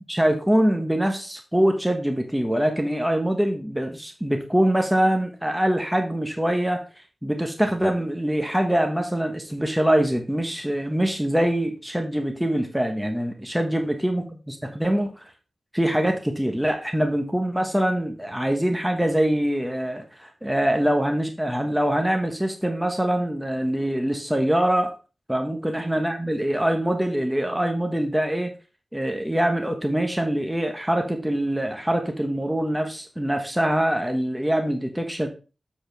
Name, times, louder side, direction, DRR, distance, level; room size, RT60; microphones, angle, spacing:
voice 1, 0.1-15.3 15.7-24.9 25.3-28.5 28.9-35.3, right 1 dB, 5° right, 4 dB, 1.3 m, -24 dB
7.4 x 7.1 x 3.4 m, 0.32 s
wide cardioid pair, 65°, 0 cm